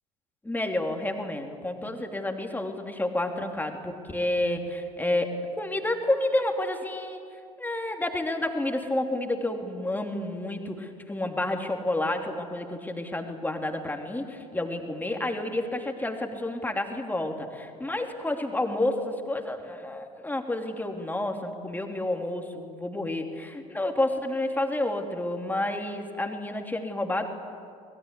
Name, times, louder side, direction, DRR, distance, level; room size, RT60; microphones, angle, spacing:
voice 1, 0.5-7.2 7.6-27.3, left 1 dB, 10° left, 3 dB, 3.1 m, -30 dB
25.0 x 21.5 x 8.3 m, 2.2 s
figure-of-eight pair, 60°, 20 cm